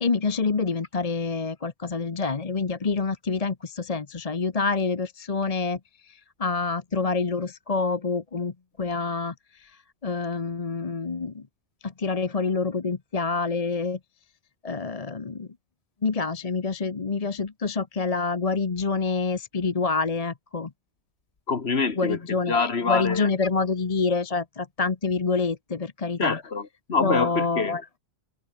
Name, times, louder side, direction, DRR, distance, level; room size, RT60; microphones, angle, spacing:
voice 1, 0.0-5.8 6.1-8.5 8.8-9.7 10.0-11.4 11.8-14.0 14.6-15.5 16.0-20.7 22.0-26.4 27.0-27.8, left 4 dB, 35° left, 1.0 m, -27 dB
voice 2, 21.5-23.4 26.2-28.0, left 4 dB, 65° left, 2.2 m, -26 dB
omnidirectional pair, 1.2 m